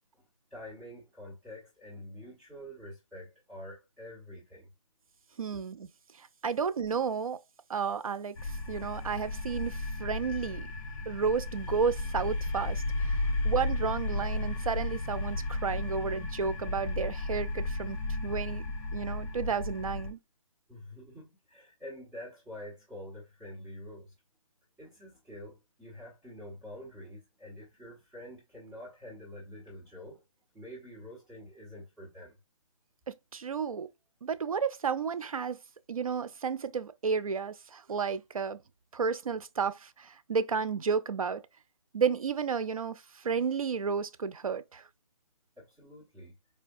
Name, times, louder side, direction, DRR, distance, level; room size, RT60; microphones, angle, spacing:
voice 1, 0.5-4.7 20.7-24.1 24.8-30.2 30.5-32.4 45.6-46.3, left 1 dB, 5° right, 1.2 m, -47 dB
voice 2, 5.4-5.9 6.2-7.4 7.7-10.7 11.1-18.0 18.2-18.6 18.9-20.2 33.1-33.9 34.2-35.6 35.9-38.6 38.9-41.4 41.9-44.8, right 6 dB, 90° right, 0.5 m, -32 dB
sound 1, 8.4-20.1, left 2 dB, 35° left, 1.0 m, -34 dB
4.8 x 2.2 x 2.6 m
hypercardioid pair, 160°, 17 cm